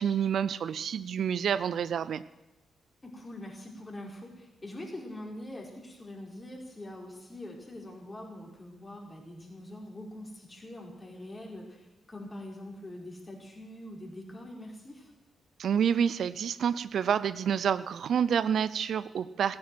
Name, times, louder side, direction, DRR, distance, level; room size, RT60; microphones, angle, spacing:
voice 1, 0.0-2.2 15.6-19.6, right 8 dB, 65° right, 16 dB, 0.4 m, -28 dB
voice 2, 3.0-15.1, left 1 dB, 30° left, -1 dB, 5.0 m, -44 dB
15.0 x 9.7 x 7.9 m, 1.0 s
hypercardioid pair, 40°, 0 cm